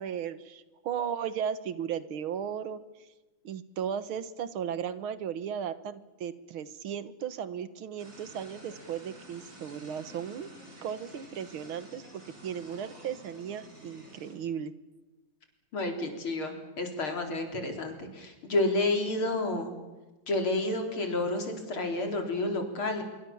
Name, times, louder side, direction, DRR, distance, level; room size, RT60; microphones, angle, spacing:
voice 1, 0.0-2.8 3.4-10.5 10.8-12.0 12.4-14.7, right 8 dB, 85° right, 14 dB, 2.1 m, -36 dB
sound 1, 8.0-14.3, right 1 dB, 65° right, 7.9 m, -51 dB
voice 2, 15.7-19.7 20.3-23.0, left 2 dB, 90° left, 4 dB, 4.8 m, -30 dB
26.0 x 23.5 x 7.2 m, 1.1 s
omnidirectional pair, 2.2 m